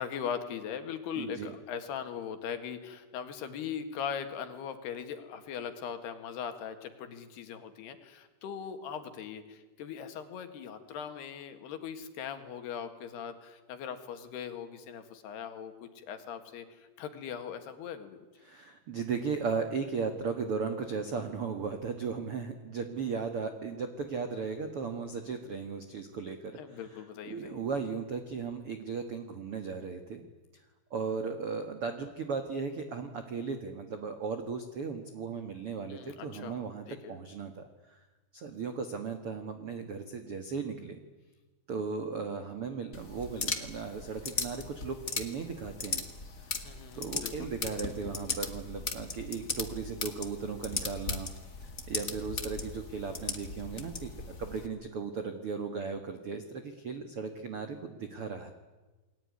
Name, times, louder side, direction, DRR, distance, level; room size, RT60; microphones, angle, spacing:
voice 1, 0.0-18.2 26.6-27.6 35.9-36.6 36.9-37.2 46.6-47.5, left 7 dB, 70° left, 8 dB, 3.8 m, -40 dB
voice 2, 1.2-1.5 18.4-30.2 30.9-38.0 38.3-41.0 41.7-46.1 46.9-51.3 51.6-58.5, right 5 dB, 70° right, 7 dB, 1.3 m, -36 dB
sound 1, 42.9-54.7, left 4 dB, 90° left, 0.7 m, -38 dB
29.0 x 21.0 x 9.7 m, 1.2 s
omnidirectional pair, 5.1 m